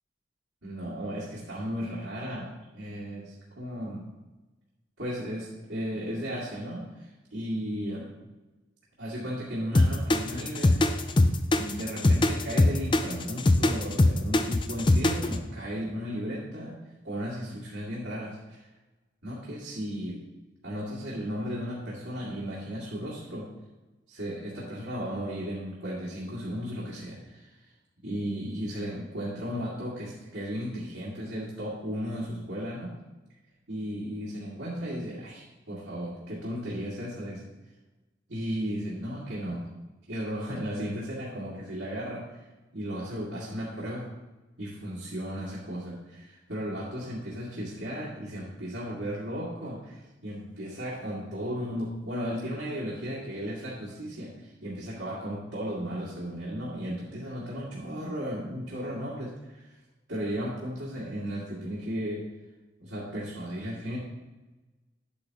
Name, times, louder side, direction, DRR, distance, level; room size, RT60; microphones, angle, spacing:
voice 1, 0.6-4.1 5.0-8.1 9.0-11.0 11.5-16.8 17.0-18.6 19.2-20.2 20.6-23.5 24.1-27.5 28.0-32.9 33.7-37.4 38.3-39.7 40.1-42.4 42.7-44.1 44.6-59.7 60.1-62.2 62.8-64.0, equal, 85° right, -8 dB, 2.2 m, -35 dB
sound 1, 9.7-15.4, left 2 dB, 25° left, 0.4 m, -21 dB
9.4 x 8.5 x 2.9 m, 1.1 s
head